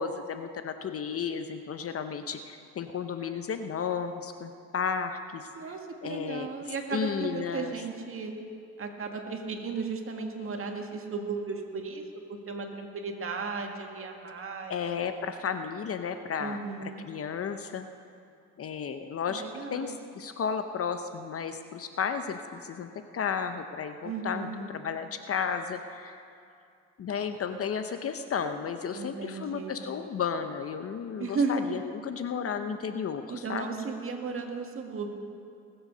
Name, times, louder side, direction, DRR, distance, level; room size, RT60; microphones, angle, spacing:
voice 1, 0.0-5.7 6.0-6.5 6.9-7.7 14.7-16.6 17.0-17.9 18.6-19.4 19.7-26.2 27.0-33.7, left 6 dB, 50° left, 8 dB, 0.7 m, -33 dB
voice 2, 5.5-8.3 8.8-12.0 12.3-14.8 16.4-17.1 19.2-20.0 24.0-24.7 28.9-29.9 31.2-31.7 33.3-35.1, right 4 dB, 45° right, 2 dB, 1.9 m, -35 dB
20.0 x 7.9 x 6.7 m, 2.5 s
cardioid pair, 90°, 30 cm